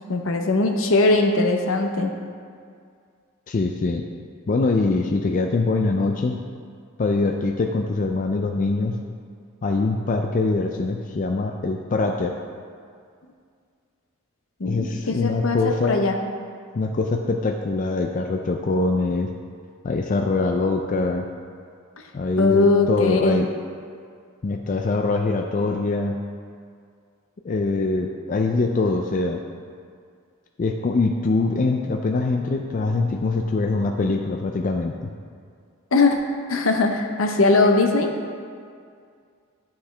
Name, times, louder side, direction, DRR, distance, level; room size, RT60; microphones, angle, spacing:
voice 1, 0.1-2.1 14.6-16.2 22.4-23.5 35.9-36.2 36.5-38.1, left 3 dB, 70° left, 4 dB, 0.8 m, -20 dB
voice 2, 3.5-4.0 4.5-6.4 7.0-9.0 9.6-12.3 14.7-16.0 16.7-19.3 19.8-21.2 22.1-23.5 24.4-26.2 27.4-29.4 30.6-35.1, left 3 dB, 40° left, 3 dB, 0.4 m, -23 dB
11.5 x 5.6 x 3.3 m, 2.2 s
head